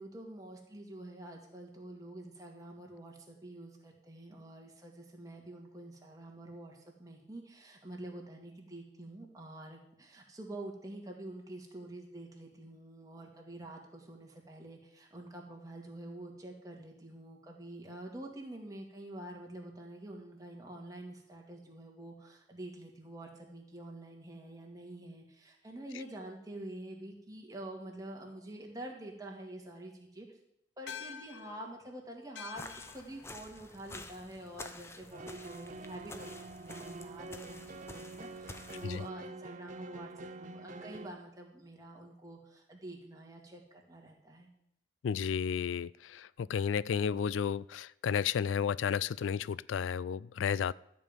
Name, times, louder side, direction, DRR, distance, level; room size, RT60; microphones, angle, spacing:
voice 1, 0.0-30.3 30.8-44.5, right 1 dB, 20° right, 0 dB, 2.1 m, -47 dB
sound 1, 30.9-35.5, left 8 dB, 65° left, 0.8 m, -50 dB
sound 2, 32.5-39.1, left 2 dB, 15° left, 0.7 m, -50 dB
sound 3, 35.1-41.1, right 3 dB, 40° right, 0.6 m, -46 dB
voice 2, 45.0-50.7, left 7 dB, 90° left, 21 dB, 0.3 m, -32 dB
13.5 x 5.3 x 8.9 m, 0.79 s
head